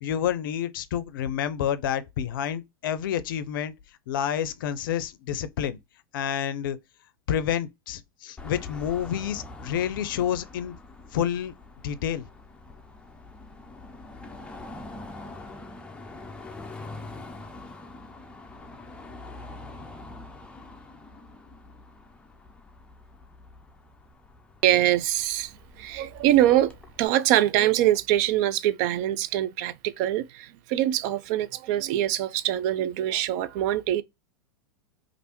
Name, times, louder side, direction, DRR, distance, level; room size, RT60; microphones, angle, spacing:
voice 1, 0.0-3.7 4.1-5.8 6.1-6.8 7.3-10.8 11.1-11.5 11.8-12.2, left 9 dB, 65° left, 0.5 m, -29 dB
Car passing by / Traffic noise roadway noise / Engine, 8.4-27.1, left 2 dB, 10° left, 0.5 m, -44 dB
voice 2, 24.6-34.0, right 13 dB, 50° right, 0.4 m, -24 dB
3.3 x 2.5 x 2.9 m
hypercardioid pair, 100°, 12 cm